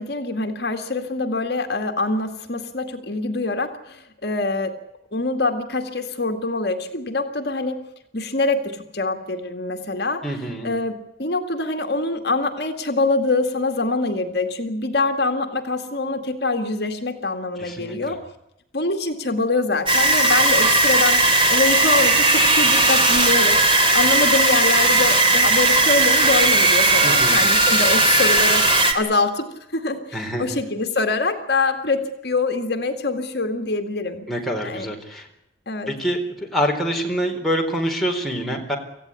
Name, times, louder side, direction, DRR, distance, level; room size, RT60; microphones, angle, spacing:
voice 1, 0.0-4.8 5.1-7.8 8.1-10.2 10.6-18.2 18.7-29.5 29.7-34.3 34.6-34.9 35.7-36.0, left 3 dB, 55° left, 6 dB, 2.1 m, -24 dB
voice 2, 10.2-10.7 17.6-18.2 27.0-27.4 30.1-30.5 34.3-35.3 35.9-38.8, equal, ahead, -1 dB, 4.0 m, -26 dB
sound 1, 19.9-28.9, right 2 dB, 25° right, 3.0 m, -17 dB
26.5 x 15.5 x 9.8 m, 0.87 s
head